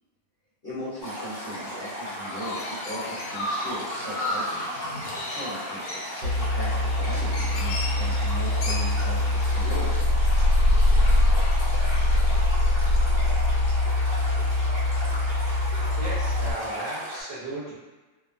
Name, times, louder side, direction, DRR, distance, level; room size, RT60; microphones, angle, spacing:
voice 1, 0.6-4.7 5.1-9.9, equal, 45° left, -13 dB, 0.9 m, -38 dB
Stream, 1.0-17.2, equal, 20° right, 0.8 m, -36 dB
Chirp tweet, 1.8-12.4, left 1 dB, 75° left, 1.1 m, -36 dB
sound 1, 6.2-16.5, left 2 dB, 75° right, 1.1 m, -23 dB
voice 2, 14.8-15.2 15.9-17.7, right 1 dB, 50° right, -11 dB, 0.9 m, -36 dB
2.8 x 2.1 x 2.4 m, 1.2 s
omnidirectional pair, 1.8 m